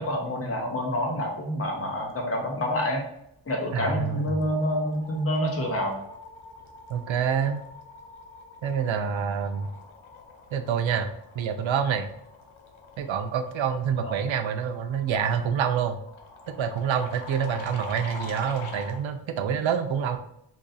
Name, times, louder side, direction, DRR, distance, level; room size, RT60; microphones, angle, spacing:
voice 1, 0.0-3.0 3.5-6.0 14.0-14.1, equal, 30° left, 1 dB, 0.8 m, -27 dB
sound 1, 3.2-3.5 3.8-19.0, left 3 dB, 80° left, 0.7 m, -45 dB
voice 2, 3.7-4.3 6.9-7.6 8.6-9.7 10.5-11.1 11.4-12.1 13.0-16.0 16.6-20.2, right 7 dB, 70° right, 8 dB, 0.5 m, -27 dB
3.0 x 2.5 x 4.0 m, 0.76 s
wide cardioid pair, 75°, 48 cm